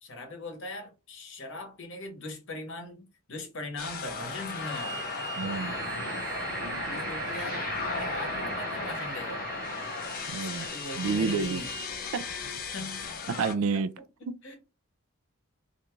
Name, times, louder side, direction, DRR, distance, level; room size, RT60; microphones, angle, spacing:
voice 1, 0.0-5.0 6.8-9.5 10.4-11.7 12.7-13.1 14.2-14.6, left 2 dB, 55° left, 0.9 m, -40 dB
sound 1, 3.8-13.5, left 5 dB, 40° left, 0.4 m, -36 dB
Bowed string instrument, 4.4-11.9, right 4 dB, 15° right, 0.7 m, -46 dB
sound 2, 5.4-10.8, right 3 dB, 50° right, 0.7 m, -37 dB
voice 2, 5.4-5.8 10.3-10.7 10.9-11.6 12.1-12.3 13.4-13.9 14.3-14.4, right 5 dB, 70° right, 0.3 m, -29 dB
2.5 x 2.2 x 3.0 m
head